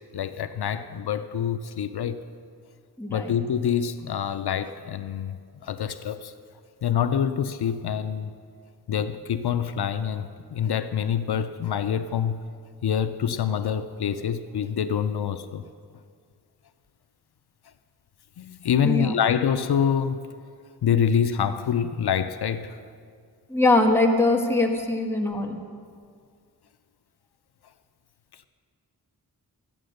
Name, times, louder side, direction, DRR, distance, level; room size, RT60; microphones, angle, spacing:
voice 1, 0.1-2.2 3.1-6.3 6.8-8.3 8.9-12.4 12.8-15.6 18.4-20.2 20.8-22.8, left 8 dB, 80° left, 0.6 m, -26 dB
voice 2, 3.0-3.3 18.8-19.1 23.5-25.6, left 2 dB, 5° left, 1.3 m, -22 dB
13.5 x 9.3 x 6.5 m
wide cardioid pair, 100°, 39 cm